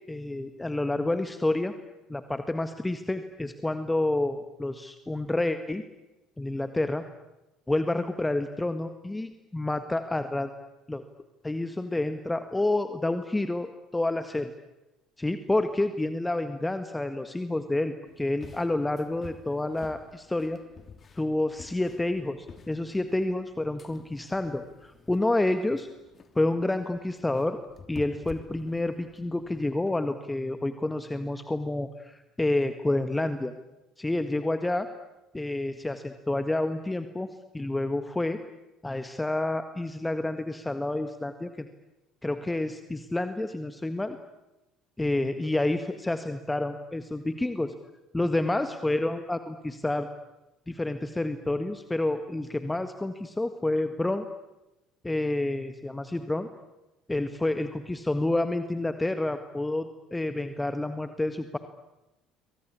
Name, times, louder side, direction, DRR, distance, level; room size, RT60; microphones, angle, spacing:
voice 1, 0.1-1.7 2.1-5.8 6.4-7.0 7.7-10.5 10.9-11.0 11.4-14.5 15.2-20.6 21.2-25.9 26.3-27.6 27.9-33.5 34.0-34.9 35.3-37.3 37.5-38.4 38.8-41.7 42.2-44.2 45.0-47.7 48.1-50.1 50.7-54.2 55.0-56.5 57.1-61.6, left 2 dB, 10° left, 9 dB, 1.7 m, -29 dB
sound 1, 18.1-29.9, left 5 dB, 35° left, 3.1 m, -50 dB
28.0 x 24.5 x 8.6 m, 0.99 s
figure-of-eight pair, 60°, 0 cm